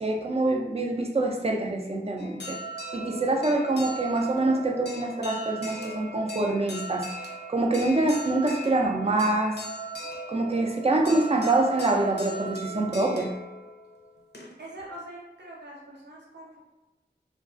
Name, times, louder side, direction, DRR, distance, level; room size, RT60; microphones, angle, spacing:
voice 1, 0.0-2.6 2.9-7.1 7.5-9.6 10.3-13.3, right 2 dB, 35° right, 1 dB, 0.4 m, -25 dB
sound 1, 2.2-14.8, right 1 dB, 75° left, 0.4 m, -39 dB
voice 2, 14.6-16.6, right 1 dB, 85° right, -4 dB, 0.7 m, -43 dB
2.3 x 2.2 x 2.4 m, 1.1 s
wide cardioid pair, 40°, 17 cm